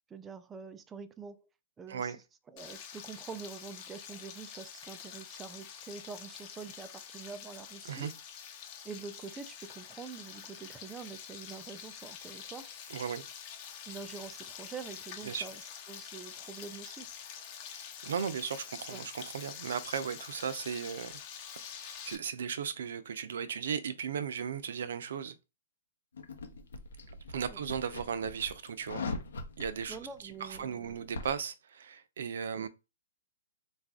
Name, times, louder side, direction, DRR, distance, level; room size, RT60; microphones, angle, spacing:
voice 1, 0.1-1.4 1.8-2.2 2.5-8.1 8.8-12.7 13.9-17.1 18.9-19.1 29.9-31.1 32.5-32.7, right 5 dB, 15° right, 0.3 m, -46 dB
Frying (food), 2.6-22.2, left 8 dB, 40° left, 0.9 m, -46 dB
voice 2, 12.9-13.3 15.3-15.4 18.0-21.2 21.6-25.3 27.3-29.1 29.6-30.0 30.4-32.7, right 7 dB, 75° right, 0.6 m, -36 dB
sound 1, 26.1-31.4, left 3 dB, 85° left, 1.0 m, -42 dB
3.9 x 2.5 x 3.5 m
hypercardioid pair, 140°, 0 cm